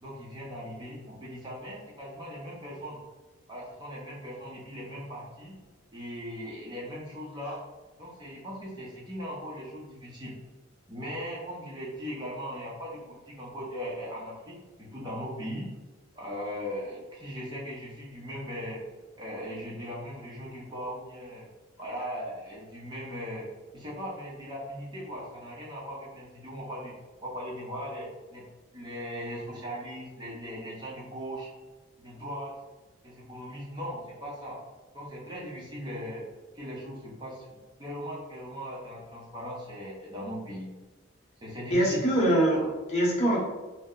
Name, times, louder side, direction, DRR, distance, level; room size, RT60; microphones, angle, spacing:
voice 1, 0.0-3.0 3.5-5.6 5.9-7.6 8.0-10.3 10.9-15.7 16.1-18.8 19.2-21.4 21.8-23.5 23.7-26.9 27.2-28.4 28.7-31.5 32.0-32.5 33.0-34.6 34.9-36.2 36.5-40.7 41.4-42.0, equal, 20° right, -5 dB, 0.7 m, -39 dB
voice 2, 41.7-43.4, right 1 dB, 35° left, -5 dB, 0.9 m, -24 dB
2.8 x 2.1 x 3.7 m, 1.2 s
head